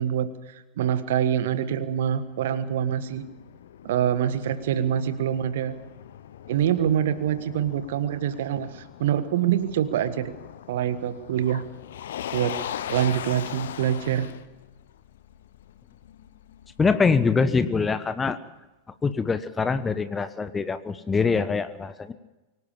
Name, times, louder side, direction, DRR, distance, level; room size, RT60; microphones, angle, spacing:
voice 1, 0.0-3.2 3.8-5.8 6.5-10.3 10.7-11.6 12.3-12.6 12.9-14.3, right 10 dB, 55° right, 12 dB, 1.5 m, -25 dB
Motor vehicle (road), 1.9-16.9, left 10 dB, 60° left, 1.0 m, -40 dB
voice 2, 16.8-18.4 19.0-22.1, left 5 dB, 15° left, 12 dB, 1.2 m, -24 dB
24.5 x 17.0 x 7.1 m, 1.1 s
figure-of-eight pair, 90°, 0 cm